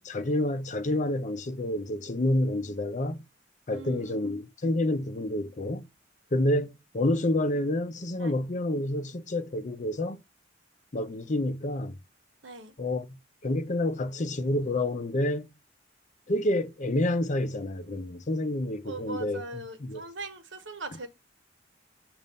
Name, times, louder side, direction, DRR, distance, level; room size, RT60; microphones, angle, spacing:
voice 1, 0.0-3.3 3.7-5.8 6.3-10.2 10.9-12.0 12.8-15.5 16.3-20.0, left 1 dB, 40° left, 0.6 m, -29 dB
voice 2, 3.7-4.4 7.0-7.1 8.2-8.3 12.4-12.7 18.8-21.1, right 3 dB, 75° right, 1.1 m, -40 dB
7.3 x 2.6 x 5.2 m
head